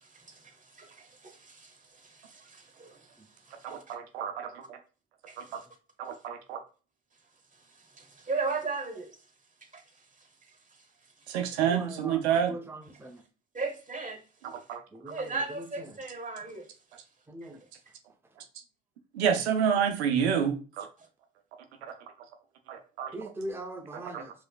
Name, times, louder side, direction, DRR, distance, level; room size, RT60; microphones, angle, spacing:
voice 1, 0.0-3.1 3.7-3.8 5.3-5.7 8.3-9.2 9.7-9.8 11.3-11.4 13.5-14.2 15.1-16.7 19.6-19.8, right 4 dB, 25° right, 1.4 m, -37 dB
voice 2, 3.6-4.8 5.4-5.5 6.0-6.6 11.3-12.6 14.4-14.8 19.1-20.9 21.8-21.9 22.7-23.1 24.1-24.2, right 8 dB, 85° right, 0.6 m, -28 dB
voice 3, 11.7-12.2 12.5-13.2 14.9-15.2 17.3-17.6 23.1-24.3, right 1 dB, 5° right, 0.8 m, -40 dB
4.8 x 3.0 x 2.4 m
hypercardioid pair, 50°, 32 cm